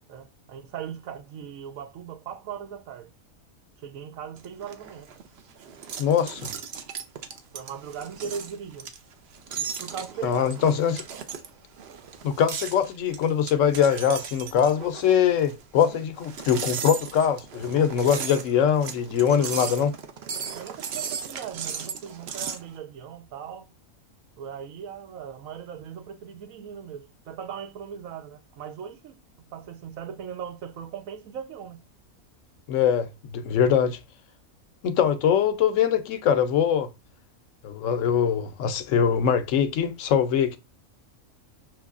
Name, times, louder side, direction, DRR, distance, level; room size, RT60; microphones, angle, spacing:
voice 1, 0.1-3.1 3.8-5.1 7.5-8.9 9.6-10.6 20.5-23.7 24.4-31.9, right 8 dB, 75° right, 1.1 m, -39 dB
sound 1, 4.4-22.7, right 7 dB, 60° right, 0.8 m, -37 dB
voice 2, 6.0-6.5 10.2-11.0 12.2-19.9 32.7-34.0 34.8-36.9 37.6-40.6, left 8 dB, 70° left, 0.9 m, -22 dB
5.9 x 3.0 x 2.4 m
omnidirectional pair, 1.5 m